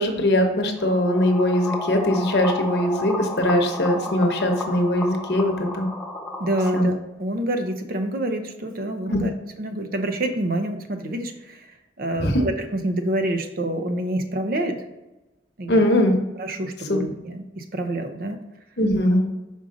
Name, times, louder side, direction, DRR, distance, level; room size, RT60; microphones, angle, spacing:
voice 1, 0.0-5.9 6.7-6.9 9.1-9.2 12.2-12.4 15.7-16.1 16.9-17.0 18.8-19.2, left 1 dB, 65° left, 3 dB, 0.9 m, -21 dB
sound 1, 0.8-6.8, left 2 dB, 5° left, 0.6 m, -32 dB
voice 2, 6.4-9.3 9.6-14.8 15.6-15.8 16.4-18.4, right 1 dB, 55° right, 6 dB, 0.7 m, -27 dB
5.4 x 4.9 x 3.8 m, 1.0 s
head